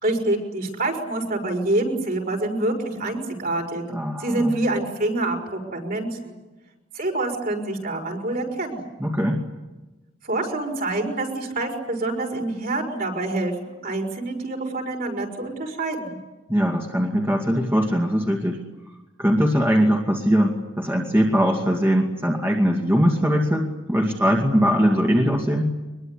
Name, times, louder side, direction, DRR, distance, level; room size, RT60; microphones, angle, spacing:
voice 1, 0.0-3.8 4.2-6.3 6.9-8.8 10.2-16.2, right 2 dB, 50° right, 2 dB, 5.8 m, -26 dB
voice 2, 3.9-4.6 9.0-9.4 16.5-18.6 19.2-25.7, equal, 10° right, 1 dB, 2.4 m, -21 dB
24.0 x 22.0 x 10.0 m, 1.1 s
head